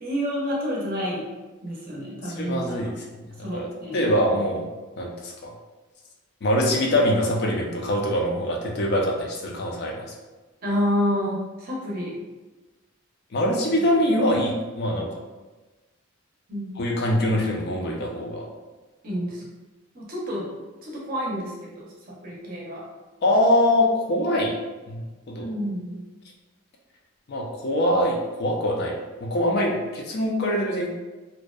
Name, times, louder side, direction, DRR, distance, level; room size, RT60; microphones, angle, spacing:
voice 1, 0.0-1.2 1.6-2.8 3.4-4.0 10.6-12.2 16.5-16.7 19.0-19.4 19.9-20.5 20.8-21.9 22.2-22.9 25.4-26.0, equal, 45° right, -4 dB, 0.6 m, -28 dB
voice 2, 2.2-2.9 3.5-3.7 3.9-4.7 5.0-5.5 6.4-10.0 13.3-15.1 16.8-18.5 23.2-24.5 24.9-25.5 27.3-28.9 29.2-30.9, left 1 dB, 50° left, -1 dB, 0.4 m, -23 dB
2.6 x 2.1 x 2.3 m, 1.2 s
head